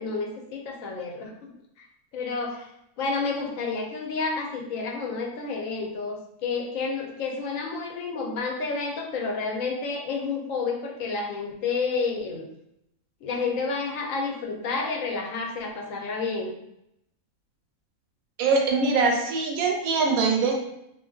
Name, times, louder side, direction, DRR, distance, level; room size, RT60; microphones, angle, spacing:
voice 1, 0.0-1.9 2.1-2.7 3.0-12.5 13.2-16.5, left 4 dB, 75° left, 1 dB, 0.9 m, -30 dB
voice 2, 18.4-20.6, right 4 dB, 85° right, 1 dB, 1.0 m, -23 dB
2.5 x 2.4 x 2.3 m, 0.80 s
omnidirectional pair, 1.5 m